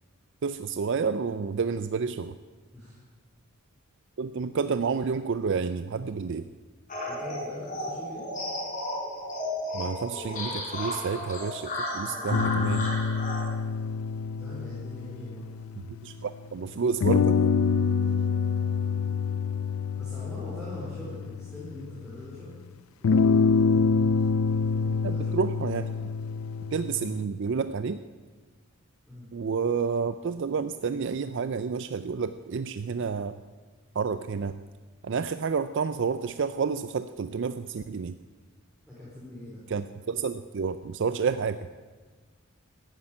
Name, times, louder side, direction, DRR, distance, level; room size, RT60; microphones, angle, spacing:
voice 1, 0.4-2.4 4.2-6.5 9.7-12.9 16.0-17.5 25.0-25.9 26.7-28.0 29.3-33.4 33.9-34.6 35.0-38.1 39.7-41.6, right 5 dB, 55° right, 11 dB, 0.4 m, -30 dB
sound 1, 6.9-13.5, left 1 dB, 40° left, 3.9 m, -33 dB
voice 2, 7.1-8.2 12.0-12.7 14.3-15.5 19.9-22.5 23.0-23.9 24.5-25.4 29.1-29.3 38.8-39.7, left 1 dB, 5° right, -9 dB, 4.3 m, -43 dB
sound 2, 12.3-16.2 17.0-22.1 23.0-27.2, left 5 dB, 75° left, 0.4 m, -26 dB
14.5 x 9.7 x 8.7 m, 1.4 s
head